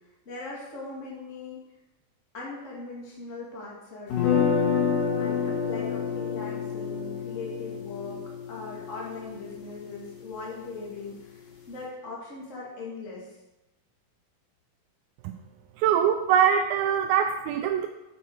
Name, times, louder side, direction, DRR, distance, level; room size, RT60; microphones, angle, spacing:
voice 1, 0.3-1.6 2.3-4.5 5.2-13.4, left 3 dB, 25° left, -5 dB, 1.8 m, -40 dB
sound 1, 4.1-10.1, left 6 dB, 70° left, 3.8 m, -28 dB
voice 2, 15.8-17.9, right 8 dB, 90° right, 5 dB, 2.4 m, -23 dB
9.3 x 8.2 x 4.8 m, 1.0 s
omnidirectional pair, 4.2 m